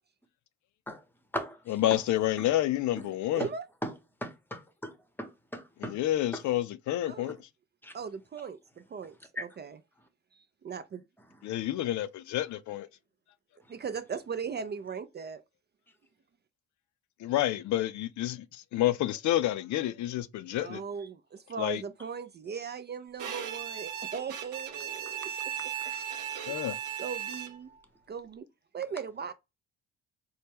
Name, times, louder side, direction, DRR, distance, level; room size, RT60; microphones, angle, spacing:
voice 1, 1.7-3.4 5.8-7.4 11.4-12.9 17.2-20.8 21.6-21.8 26.5-26.8, left 14 dB, 70° left, 0.5 m, -29 dB
voice 2, 3.3-3.7 7.1-7.3 7.9-9.8 10.3-11.0 13.7-15.4 20.5-25.5 25.8-26.2 26.4-26.5 27.0-27.7 28.1-28.4 28.7-29.3, right 6 dB, 35° right, 0.4 m, -39 dB
voice 3, 4.2-6.0 6.3-6.4 7.8-7.9 9.4-9.5 11.5-11.6 25.1-25.2, equal, 5° left, 0.9 m, -37 dB
Bowed string instrument, 23.2-27.8, right 10 dB, 80° right, 0.8 m, -37 dB
4.3 x 2.1 x 3.4 m
cardioid pair, 90°, 30 cm